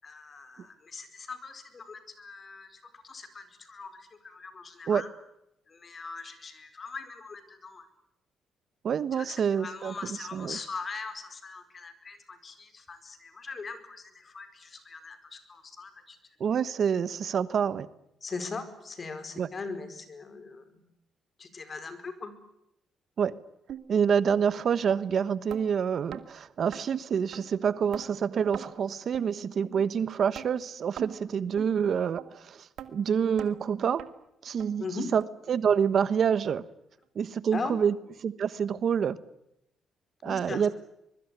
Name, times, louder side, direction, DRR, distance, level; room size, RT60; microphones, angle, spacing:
voice 1, 0.0-5.1 5.7-7.9 9.1-16.2 18.2-20.8 21.4-22.4 34.8-35.1 37.5-37.8 40.2-40.7, left 4 dB, 40° left, 10 dB, 4.7 m, -40 dB
voice 2, 8.8-9.9 10.3-10.6 16.4-17.9 19.4-19.5 23.2-23.3 23.9-34.0 34.4-34.8 35.1-35.2 35.5-36.7 37.1-37.9 38.2-39.2 40.2-40.7, right 7 dB, 55° right, 15 dB, 1.2 m, -27 dB
sound 1, 23.7-23.8 24.3-24.4 24.9-25.0 25.5-25.6 26.1-26.2 26.7-26.8 27.3-27.4 27.9-28.1 28.5-28.7 29.1-29.3 29.8-29.9 30.3-30.5 31.0-31.1 31.6-31.7 32.2-32.3 32.8-32.9 33.4-33.5 34.0-34.1 34.6-34.7 35.2-35.3 35.8-35.9 36.4-36.5, right 11 dB, 75° right, 2.1 m, -41 dB
24.0 x 23.0 x 9.5 m, 0.84 s
cardioid pair, 90°, 0 cm